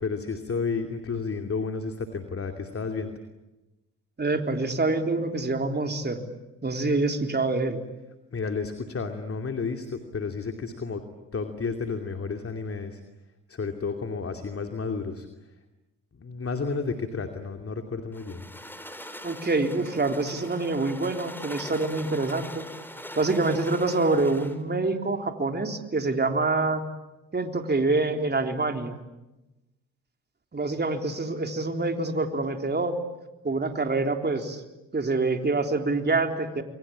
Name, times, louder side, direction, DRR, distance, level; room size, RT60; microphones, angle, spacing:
voice 1, 0.0-3.1 8.3-11.0 11.3-13.0 13.5-15.3 16.2-18.4, left 4 dB, 40° left, 5 dB, 2.8 m, -31 dB
voice 2, 4.2-6.3 6.6-7.8 19.2-22.7 23.2-26.8 27.3-29.0 30.5-33.0 33.4-34.6 34.9-36.6, right 3 dB, 30° right, 5 dB, 3.8 m, -26 dB
sound 1, 18.1-24.6, left 1 dB, 5° left, 3.8 m, -41 dB
29.0 x 23.5 x 8.8 m, 1.0 s
supercardioid pair, 60°, 36 cm